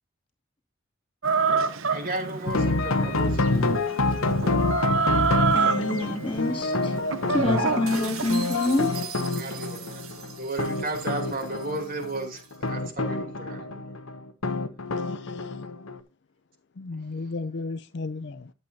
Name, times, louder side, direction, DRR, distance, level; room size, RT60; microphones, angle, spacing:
Chicken rooster, 1.2-8.2, right 5 dB, 65° right, 1.0 m, -27 dB
voice 1, 1.9-3.6 9.4-13.8, right 2 dB, 40° right, 2.9 m, -34 dB
sound 1, 2.5-16.0, left 3 dB, 75° left, 0.9 m, -27 dB
voice 2, 5.5-6.9 7.3-8.9, left 2 dB, 25° left, 2.6 m, -26 dB
sound 2, 7.9-12.6, right 8 dB, 90° right, 1.9 m, -41 dB
voice 3, 15.0-15.6 16.8-18.5, left 3 dB, 55° left, 0.5 m, -35 dB
11.5 x 8.0 x 2.8 m
head